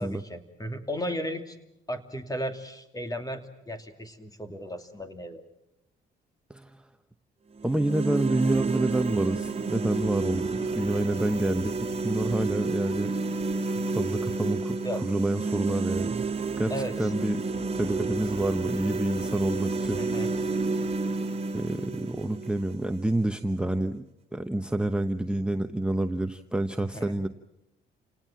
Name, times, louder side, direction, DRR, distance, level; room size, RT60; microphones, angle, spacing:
voice 1, 0.0-1.6 1.9-5.4 14.8-15.1 16.7-17.1 20.0-20.3 26.9-27.2, equal, 20° left, 7 dB, 2.7 m, -35 dB
voice 2, 6.5-6.8 7.6-13.1 13.7-16.2 16.6-17.4 17.8-20.0 21.5-24.0 24.3-27.3, right 1 dB, 5° right, 7 dB, 1.0 m, -28 dB
sound 1, 7.6-23.6, right 3 dB, 30° right, 2.9 m, -30 dB
28.5 x 18.5 x 7.4 m, 0.85 s
cardioid pair, 90°, 20 cm